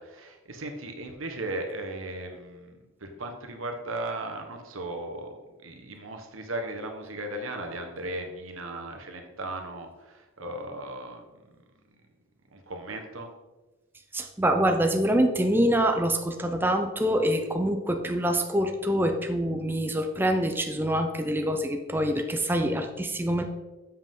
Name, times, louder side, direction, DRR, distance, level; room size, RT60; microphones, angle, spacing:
voice 1, 0.0-11.6 12.5-13.3, right 1 dB, 80° right, 4 dB, 1.3 m, -37 dB
voice 2, 14.1-23.4, right 1 dB, 10° right, 5 dB, 0.5 m, -25 dB
7.6 x 7.5 x 3.7 m, 1.2 s
head